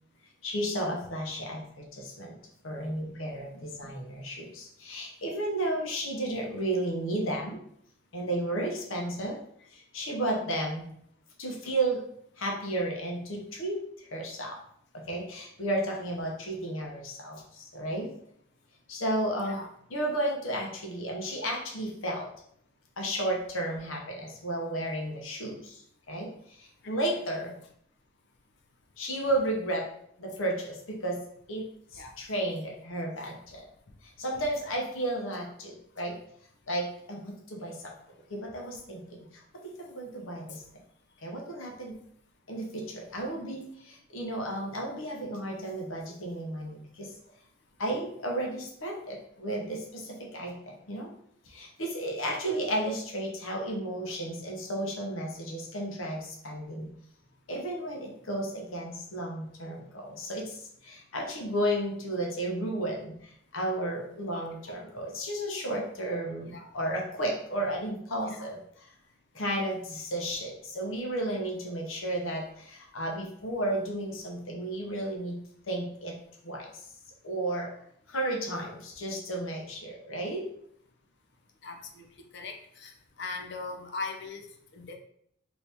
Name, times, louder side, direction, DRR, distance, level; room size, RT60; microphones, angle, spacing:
voice 1, 0.4-2.3 2.6-7.6 8.1-9.4 9.7-10.8 11.4-12.0 12.4-14.6 14.9-18.1 18.9-19.6 19.9-22.3 23.0-25.8 26.1-27.6 29.0-29.9 30.2-31.2 31.5-33.6 34.2-36.1 36.7-37.9 38.3-40.6 41.2-42.0 42.5-47.1 47.8-51.1 51.4-56.9 57.5-68.9 69.3-75.4 75.7-76.2 76.4-76.9 77.2-77.7 78.1-80.5, right 1 dB, 80° left, 0 dB, 0.9 m, -33 dB
voice 2, 81.6-82.1 82.3-82.9 83.2-85.0, left 3 dB, 55° left, 4 dB, 0.5 m, -39 dB
3.0 x 2.6 x 3.4 m, 0.69 s
head